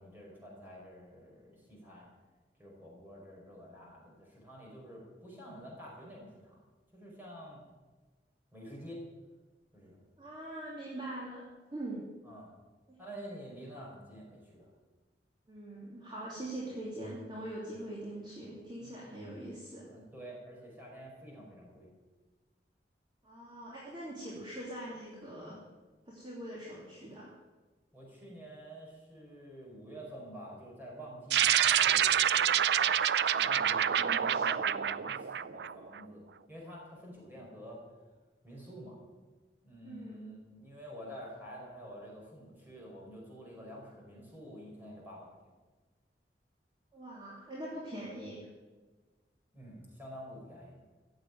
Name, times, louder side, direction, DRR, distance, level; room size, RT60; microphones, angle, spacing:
voice 1, 0.0-2.1 2.6-6.6 6.9-7.6 8.5-9.0 9.7-10.0 12.2-12.5 13.0-14.7 18.8-19.0 19.9-21.9 27.9-37.8 38.4-39.0 39.6-45.4 49.5-50.8, equal, 10° right, -3 dB, 5.0 m, -48 dB
voice 2, 10.2-11.5 11.7-12.0 15.5-19.9 23.2-25.6 26.1-27.3 33.3-34.4 39.8-40.2 46.9-48.5, right 1 dB, 25° right, -6 dB, 2.8 m, -43 dB
sound 1, 31.3-36.0, right 9 dB, 70° right, 0.4 m, -27 dB
15.0 x 8.0 x 9.4 m, 1.3 s
head